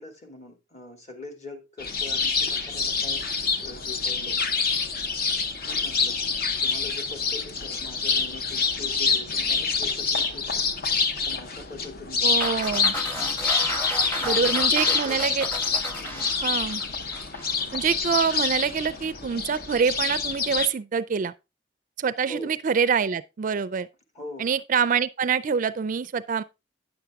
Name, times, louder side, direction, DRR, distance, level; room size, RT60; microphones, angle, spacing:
voice 1, 0.0-3.3 3.5-4.6 5.6-6.2 6.6-10.7 11.2-12.5 13.2-13.5 14.1-15.2 16.0-16.4 22.3-22.5 24.1-24.5, left 2 dB, 40° left, 2.0 m, -42 dB
sound 1, 1.8-20.7, left 5 dB, 55° left, 0.9 m, -26 dB
voice 2, 12.2-12.9 14.2-15.5 16.4-16.8 17.7-21.3 22.0-23.9 24.4-26.4, right 6 dB, 45° right, 0.4 m, -25 dB
sound 2, 12.4-17.6, equal, 10° left, 1.0 m, -34 dB
9.7 x 6.9 x 3.5 m
head